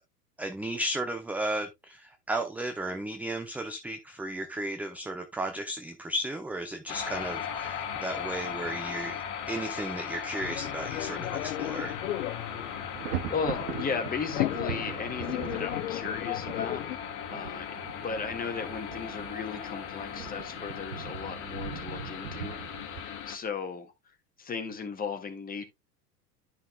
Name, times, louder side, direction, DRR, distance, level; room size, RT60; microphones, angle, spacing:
voice 1, 0.4-12.0, right 1 dB, 5° right, 0.6 m, -34 dB
sound 1, 6.9-23.4, left 8 dB, 40° left, 2.0 m, -38 dB
sound 2, 10.4-17.0, left 15 dB, 65° left, 0.6 m, -35 dB
Thunder, 11.6-11.9 12.2-23.0, right 9 dB, 70° right, 1.1 m, -41 dB
voice 2, 13.3-17.0 17.3-23.9 24.4-25.7, left 5 dB, 20° left, 1.9 m, -36 dB
12.5 x 5.6 x 2.3 m
figure-of-eight pair, 90°, 47 cm